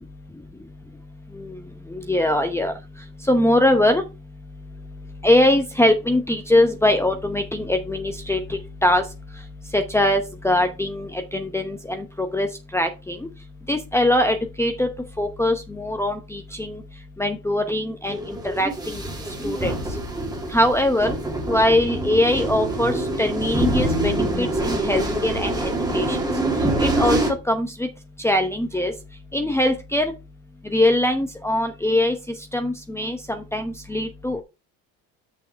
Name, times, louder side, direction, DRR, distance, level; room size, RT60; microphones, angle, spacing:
voice 1, 1.9-2.7 3.3-4.0 5.2-9.0 9.7-13.2 13.7-14.9 15.2-16.8 17.2-19.0 19.4-19.7 20.5-21.1 21.5-26.2 26.8-27.2 27.5-27.9 28.2-28.9 29.3-30.1 30.7-32.1 32.5-34.4, left 1 dB, 5° left, 6 dB, 0.8 m, -22 dB
sound 1, 18.1-27.3, right 1 dB, 10° right, 1.8 m, -25 dB
6.4 x 5.6 x 4.5 m, 0.27 s
cardioid pair, 100°, 35 cm